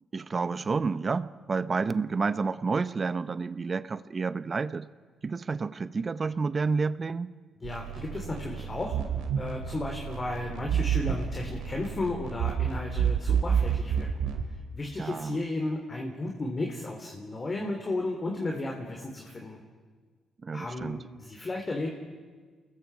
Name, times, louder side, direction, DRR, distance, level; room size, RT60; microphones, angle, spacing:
voice 1, 0.1-4.9 5.2-7.3 15.0-15.4 20.4-21.0, right 4 dB, 40° right, 15 dB, 0.8 m, -30 dB
voice 2, 7.6-9.0 9.3-14.1 14.7-19.6 20.5-21.9, left 2 dB, 35° left, 1 dB, 3.5 m, -34 dB
sound 1, 7.6-14.5, right 8 dB, 80° right, 2.5 m, -30 dB
28.5 x 21.0 x 4.9 m, 1.5 s
supercardioid pair, 65°, 0 cm